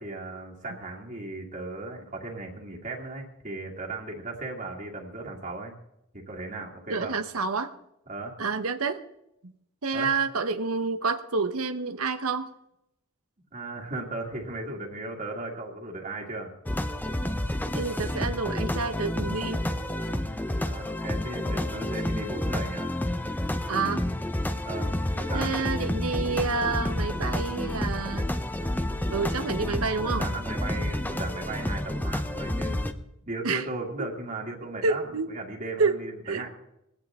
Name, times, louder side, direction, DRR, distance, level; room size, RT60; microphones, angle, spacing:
voice 1, 0.0-5.7 6.1-7.2 8.1-8.3 9.9-10.1 13.5-16.5 20.6-23.0 24.6-25.7 28.6-28.9 30.0-33.0 33.3-36.5, right 2 dB, 35° right, -1 dB, 2.1 m, -36 dB
voice 2, 6.9-7.8 8.4-9.0 9.4-9.5 9.8-12.5 17.7-19.6 23.7-24.0 25.3-28.3 29.1-30.3 33.4-33.6 34.0-34.1 34.8-35.3 35.8-36.5, right 4 dB, 75° right, 8 dB, 1.0 m, -28 dB
sound 1, 16.7-32.9, left 1 dB, 10° left, 0.7 m, -30 dB
20.0 x 16.0 x 3.6 m, 0.83 s
head